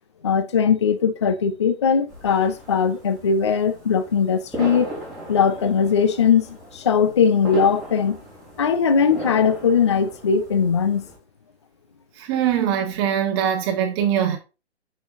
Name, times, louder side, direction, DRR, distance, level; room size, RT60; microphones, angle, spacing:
voice 1, 0.2-4.9 5.3-8.2 8.6-11.1, left 6 dB, 30° left, 0.3 m, -20 dB
sound 1, 2.1-11.2, right 1 dB, ahead, 2.6 m, -38 dB
voice 2, 12.2-14.4, right 9 dB, 25° right, 1.2 m, -22 dB
6.9 x 5.7 x 2.5 m
hypercardioid pair, 145°, 33 cm